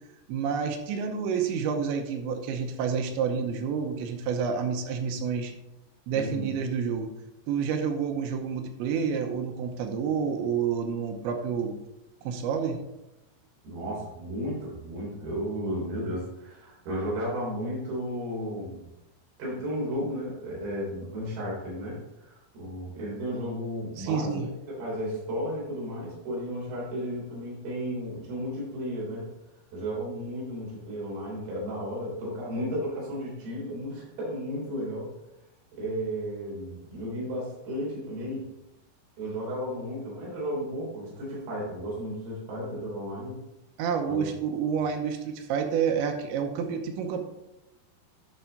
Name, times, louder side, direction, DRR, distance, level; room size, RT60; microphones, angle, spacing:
voice 1, 0.3-5.5 6.1-7.1 7.5-11.8 12.2-12.8 24.0-24.5 43.8-47.2, right 6 dB, 85° right, 5 dB, 3.2 m, -29 dB
voice 2, 6.1-6.5 13.6-18.9 19.4-29.3 29.7-35.1 35.8-38.5 39.2-43.4 44.1-44.2, equal, 60° right, -5 dB, 5.1 m, -34 dB
11.5 x 5.8 x 4.0 m, 0.90 s
omnidirectional pair, 5.2 m